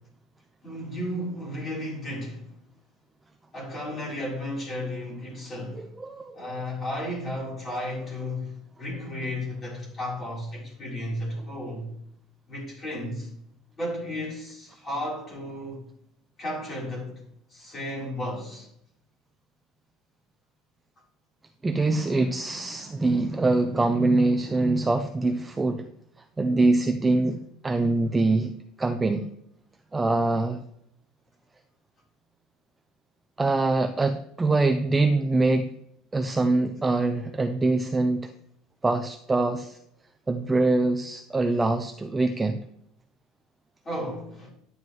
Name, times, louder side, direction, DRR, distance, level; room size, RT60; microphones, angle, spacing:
voice 1, 0.6-2.5 3.5-5.8 6.3-11.9 12.5-13.3 13.8-15.8 16.4-17.2 17.5-18.7 43.8-44.5, left 1 dB, 20° left, 3.7 m, -33 dB
voice 2, 5.7-6.4 21.6-25.8 26.4-28.5 28.8-29.3 29.9-30.6 33.4-35.7 36.1-38.3 38.8-39.8 40.3-42.6, right 2 dB, 10° right, 0.4 m, -24 dB
11.0 x 9.4 x 3.1 m
cardioid pair, 180°, 0 cm